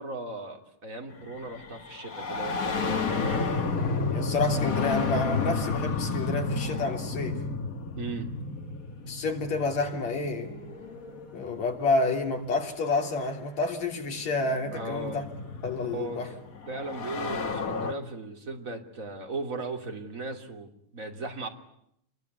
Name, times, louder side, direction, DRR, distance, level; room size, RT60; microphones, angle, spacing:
voice 1, 0.0-3.4 8.0-8.4 14.7-15.2 15.9-16.3 16.7-21.5, right 3 dB, 25° right, 3.1 m, -37 dB
sound 1, 1.2-11.8 13.1-13.2 14.2-17.9, left 4 dB, 35° left, 1.6 m, -32 dB
voice 2, 4.1-7.4 9.1-10.5 11.3-15.2 15.6-16.3, left 3 dB, 65° left, 4.4 m, -29 dB
27.5 x 22.0 x 9.6 m
omnidirectional pair, 3.5 m